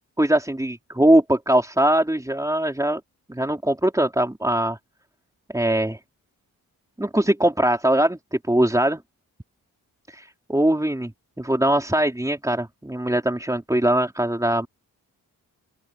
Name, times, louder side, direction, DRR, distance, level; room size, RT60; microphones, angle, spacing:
voice 1, 0.2-3.0 3.3-4.8 5.5-6.0 7.0-9.0 10.1-11.1 11.4-14.7, right 1 dB, 10° right, 3.9 m, -21 dB
open air
cardioid pair, 85°, 35 cm